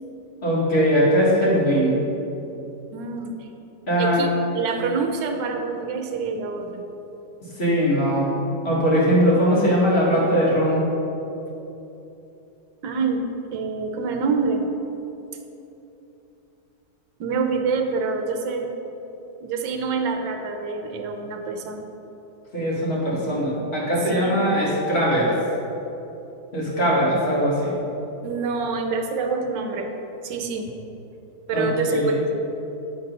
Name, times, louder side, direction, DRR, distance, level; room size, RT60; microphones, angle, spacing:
voice 1, 0.4-2.0 3.9-4.3 7.6-8.3 8.6-10.8 22.5-25.3 26.5-27.7 31.5-32.2, equal, 35° left, -6 dB, 2.0 m, -20 dB
voice 2, 2.9-3.3 4.0-6.8 12.8-14.7 17.2-18.7 19.4-21.8 24.1-24.5 28.2-29.9 30.2-30.7 31.5-32.2, right 4 dB, 70° right, 4 dB, 1.4 m, -26 dB
9.1 x 4.1 x 5.3 m, 3.0 s
omnidirectional pair, 2.1 m